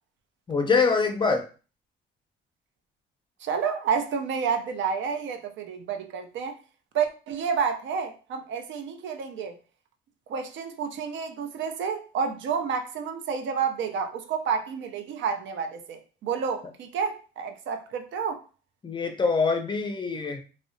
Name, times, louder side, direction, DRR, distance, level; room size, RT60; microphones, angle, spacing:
voice 1, 0.5-1.5 18.8-20.4, left 4 dB, 25° left, 0.5 m, -24 dB
voice 2, 3.4-6.6 6.9-9.6 10.3-18.4, right 6 dB, 70° right, 0.4 m, -30 dB
2.7 x 2.0 x 2.5 m
cardioid pair, 90°, 20 cm